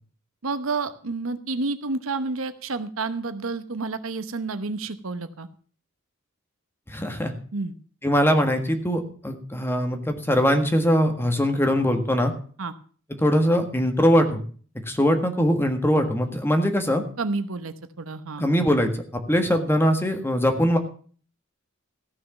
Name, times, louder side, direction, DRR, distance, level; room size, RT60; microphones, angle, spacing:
voice 1, 0.4-5.5 7.5-7.7 12.6-12.7 17.2-18.4, right 3 dB, 75° right, 11 dB, 1.0 m, -30 dB
voice 2, 6.9-7.3 8.0-12.3 13.2-14.4 14.9-17.0 18.4-20.8, equal, 10° left, 6 dB, 1.6 m, -22 dB
15.0 x 6.3 x 7.1 m, 0.44 s
head